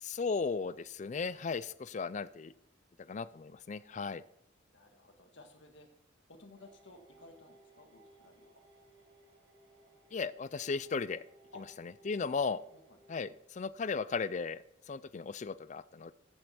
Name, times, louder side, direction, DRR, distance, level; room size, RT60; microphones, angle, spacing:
voice 1, 0.0-2.5 3.1-4.2 10.1-11.2 12.1-12.6 13.1-14.6 14.9-16.1, left 5 dB, 40° left, 17 dB, 0.4 m, -36 dB
voice 2, 4.7-5.9 6.3-8.5 11.5-11.6 12.7-13.0, left 2 dB, 70° left, 4 dB, 1.8 m, -56 dB
sound 1, 6.5-13.3, right 2 dB, 55° right, 4.6 m, -62 dB
14.5 x 8.0 x 4.3 m, 0.76 s
head